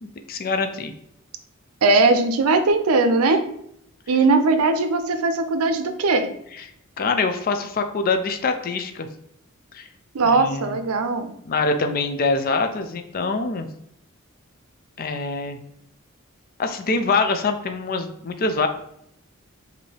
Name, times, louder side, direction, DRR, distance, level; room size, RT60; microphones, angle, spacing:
voice 1, 0.0-0.9 6.5-6.6 7.0-9.1 9.7-9.9 10.2-10.8 11.5-13.7 15.0-15.6 16.6-18.7, left 3 dB, 45° left, 7 dB, 0.4 m, -24 dB
voice 2, 1.8-3.4 4.1-6.3 10.1-11.3, right 3 dB, 90° right, 8 dB, 0.5 m, -19 dB
5.2 x 2.7 x 3.3 m, 0.74 s
head